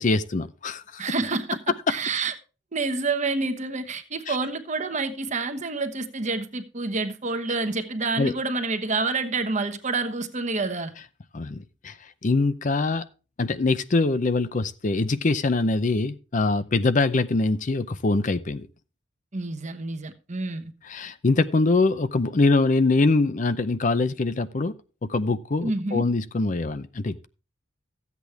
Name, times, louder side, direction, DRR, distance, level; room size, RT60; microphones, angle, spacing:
voice 1, 0.0-1.0 1.9-2.0 4.3-4.4 8.2-8.3 11.3-12.0 12.2-13.0 13.4-18.7 20.9-24.7 25.1-27.2, left 3 dB, 40° left, 13 dB, 0.5 m, -23 dB
voice 2, 1.0-2.3 2.7-10.9 19.3-20.7 25.6-26.1, right 3 dB, 35° right, 9 dB, 1.1 m, -28 dB
14.5 x 8.3 x 3.4 m, 0.34 s
head